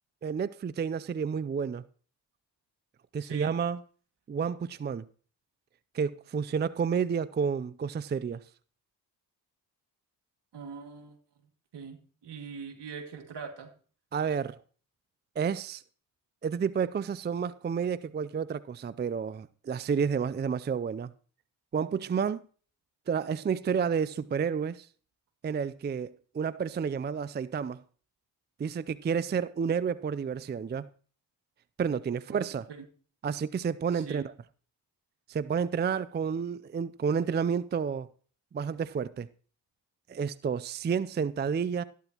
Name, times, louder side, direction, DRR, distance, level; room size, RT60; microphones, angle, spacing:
voice 1, 0.2-1.8 3.1-3.8 4.3-5.0 5.9-8.4 14.1-14.6 15.4-15.8 16.4-21.1 21.7-22.4 23.1-24.9 25.4-27.8 28.6-30.9 31.8-32.7 33.2-34.3 35.3-38.1 38.5-39.3 40.1-41.8, right 6 dB, 25° right, 0.4 m, -30 dB
voice 2, 3.2-3.5 10.5-11.2 11.7-13.7 32.3-32.8 33.9-34.3, right 5 dB, 70° right, 2.3 m, -42 dB
13.5 x 12.0 x 2.9 m
cardioid pair, 70°, 42 cm